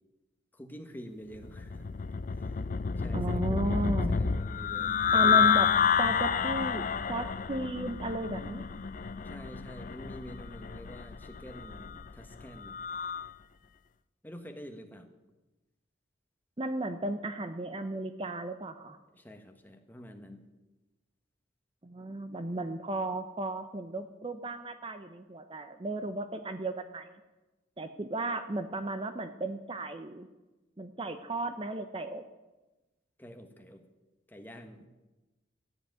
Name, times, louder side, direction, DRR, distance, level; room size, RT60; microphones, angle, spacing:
voice 1, 0.5-2.6 3.0-5.8 9.2-12.8 14.2-15.1 19.1-20.4 33.2-33.9 34.3-34.9, equal, 10° left, 5 dB, 1.2 m, -47 dB
sound 1, 1.4-13.3, left 6 dB, 40° left, 0.4 m, -29 dB
voice 2, 3.1-4.2 5.1-5.7 6.0-8.6 16.6-19.0 21.8-27.1 27.8-30.3 30.8-32.2, right 2 dB, 25° right, 9 dB, 0.6 m, -34 dB
13.5 x 7.9 x 9.3 m, 1.1 s
head